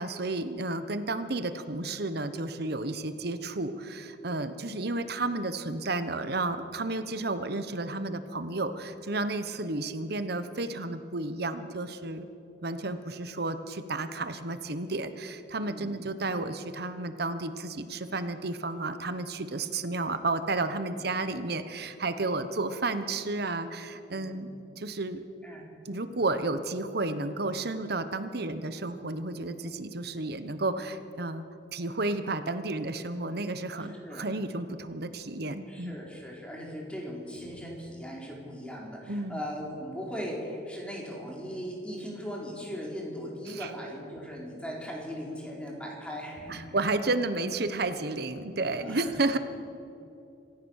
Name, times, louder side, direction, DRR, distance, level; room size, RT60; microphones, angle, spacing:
voice 1, 0.0-12.3 12.6-24.5 24.8-25.2 25.8-31.4 31.7-36.0 39.1-39.4 43.5-43.7 46.5-49.4, right 2 dB, 60° right, 11 dB, 1.1 m, -32 dB
voice 2, 35.7-46.8 48.8-49.2, equal, 5° left, -2 dB, 4.3 m, -39 dB
26.0 x 16.0 x 6.5 m, 2.7 s
head